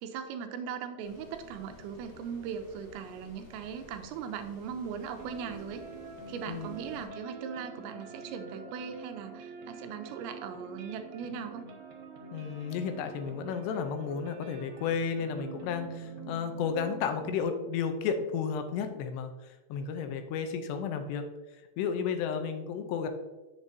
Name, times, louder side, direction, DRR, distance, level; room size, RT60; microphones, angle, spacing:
voice 1, 0.0-5.8 6.3-11.6, right 7 dB, 90° right, 5 dB, 3.0 m, -39 dB
sound 1, 1.0-7.1, left 2 dB, 45° left, 1.1 m, -53 dB
sound 2, 5.2-17.4, right 5 dB, 70° right, 2.3 m, -45 dB
voice 2, 12.3-19.3 19.7-21.2 21.8-23.1, left 6 dB, 80° left, 7 dB, 2.7 m, -32 dB
8.0 x 7.3 x 2.7 m, 1.2 s
omnidirectional pair, 5.1 m